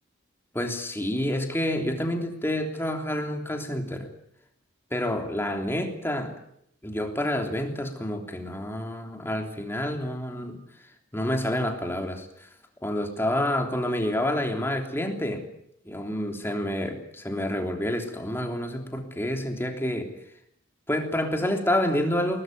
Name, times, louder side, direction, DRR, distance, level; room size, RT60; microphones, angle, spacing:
voice 1, 0.5-4.1 4.9-6.3 6.8-10.6 11.1-12.5 12.8-15.4 15.8-20.1 20.9-22.4, left 1 dB, 10° left, 3 dB, 3.4 m, -28 dB
22.5 x 19.5 x 9.4 m, 0.72 s
head